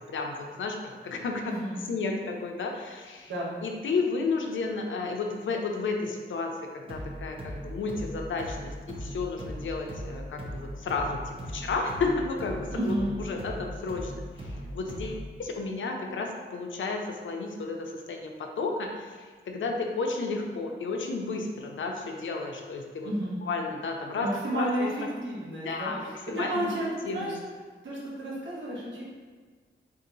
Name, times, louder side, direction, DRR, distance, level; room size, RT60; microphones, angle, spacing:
voice 1, 0.1-0.8 1.0-1.5 1.9-3.3 3.6-23.1 23.4-24.3 24.5-24.9 25.5-26.7 27.1-27.4, left 3 dB, 80° left, 2 dB, 0.5 m, -32 dB
voice 2, 1.4-1.8 3.3-3.5 12.7-13.1 23.0-23.4 24.2-24.9 25.2-27.4 27.8-29.0, right 1 dB, 75° right, -6 dB, 1.2 m, -31 dB
sound 1, 6.9-15.4, equal, 30° right, 0.5 m, -39 dB
3.6 x 2.8 x 3.9 m, 1.5 s
wide cardioid pair, 165°, 20 cm